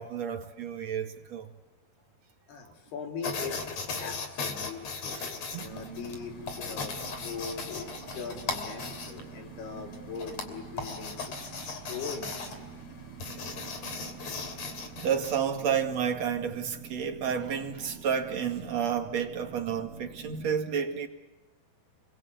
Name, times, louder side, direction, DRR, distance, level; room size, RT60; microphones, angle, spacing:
voice 1, 0.0-1.5 5.1-5.3 15.0-21.1, right 7 dB, 45° right, 3.0 m, -30 dB
voice 2, 2.5-3.6 4.0-6.9 7.2-12.7 14.8-15.0, left 5 dB, 75° left, 5.1 m, -41 dB
sound 1, 3.2-15.4, left 4 dB, 45° left, 3.8 m, -38 dB
sound 2, 5.5-20.5, right 8 dB, 80° right, 3.3 m, -47 dB
29.5 x 22.5 x 8.2 m
omnidirectional pair, 4.7 m